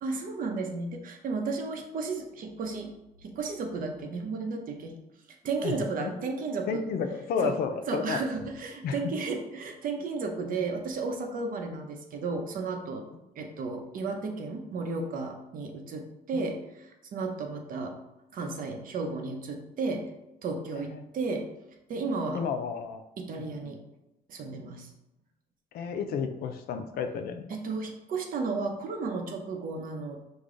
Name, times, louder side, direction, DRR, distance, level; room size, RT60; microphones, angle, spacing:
voice 1, 0.0-2.9 3.2-4.9 5.4-6.8 7.4-7.6 7.9-13.0 13.4-18.0 18.3-20.1 20.4-21.5 21.9-22.4 23.2-23.8 24.3-24.9 27.5-30.2, right 4 dB, 55° right, 3 dB, 0.8 m, -33 dB
voice 2, 5.6-6.1 6.7-8.2 8.8-9.0 16.3-16.5 20.8-21.0 22.3-23.0 23.4-23.8 25.7-27.5, left 6 dB, 65° left, 7 dB, 0.5 m, -32 dB
4.9 x 2.3 x 3.8 m, 0.91 s
cardioid pair, 110°, 17 cm